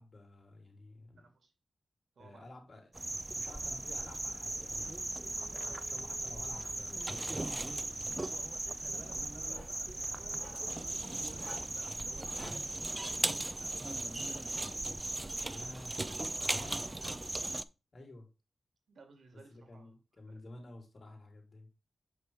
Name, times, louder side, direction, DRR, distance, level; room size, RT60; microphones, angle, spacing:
voice 1, 0.0-1.2 2.2-2.9 3.3-5.0 5.6-7.9 15.5-16.0 16.5-16.8 17.9-18.3 19.5-21.7, left 2 dB, 45° left, 3.0 m, -51 dB
voice 2, 1.2-1.5 2.2-2.6 5.5-5.8 8.2-14.6 16.3-17.0 18.9-19.9 20.3-20.4, right 4 dB, 90° right, 2.2 m, -58 dB
sound 1, 2.9-17.6, right 2 dB, 20° right, 0.4 m, -37 dB
Writing, 7.0-7.2 7.6-8.4 9.3-9.8 10.2-10.6 11.3-11.8 12.2-12.5, left 1 dB, 10° left, 2.6 m, -51 dB
8.1 x 5.5 x 3.4 m
wide cardioid pair, 140°, 0 cm